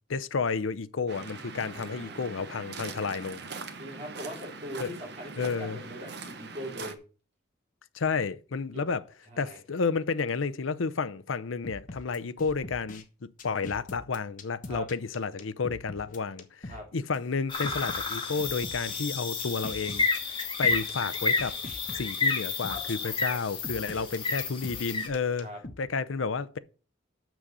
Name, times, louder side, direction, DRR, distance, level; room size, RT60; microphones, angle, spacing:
voice 1, 0.1-3.5 4.8-4.9 5.4-5.8 7.9-9.0 9.4-21.5 21.9-25.5 25.8-26.6, left 4 dB, 80° left, 0.6 m, -31 dB
Waves surf, 1.1-6.9, right 4 dB, 55° right, 0.9 m, -42 dB
voice 2, 1.7-2.4 3.8-7.0 8.7-8.9 9.3-9.6 14.7-14.8 16.7-16.9 23.9-24.1 25.4-25.6, equal, 35° right, 3.3 m, -41 dB
sound 1, 11.6-13.0 13.4-16.8 17.1-17.2 17.6-19.0 19.4-23.0 23.6-25.8, left 2 dB, 40° left, 1.1 m, -43 dB
sound 2, 17.5-25.1, left 4 dB, 25° left, 1.8 m, -30 dB
6.3 x 6.3 x 6.7 m
head